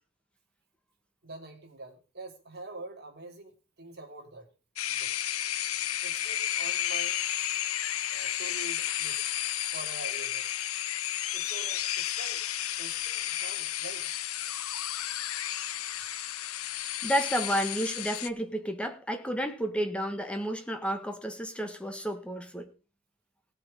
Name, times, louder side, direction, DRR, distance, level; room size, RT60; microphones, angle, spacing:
voice 1, 1.2-4.5 5.0-5.1 6.0-7.2 8.1-9.2 9.7-10.4 11.3-12.4 12.8-14.1, right 2 dB, 50° right, 3.4 m, -45 dB
sound 1, 4.8-18.3, left 12 dB, 85° left, 0.8 m, -32 dB
voice 2, 17.0-22.7, equal, 5° left, 1.5 m, -31 dB
17.5 x 7.3 x 5.2 m
head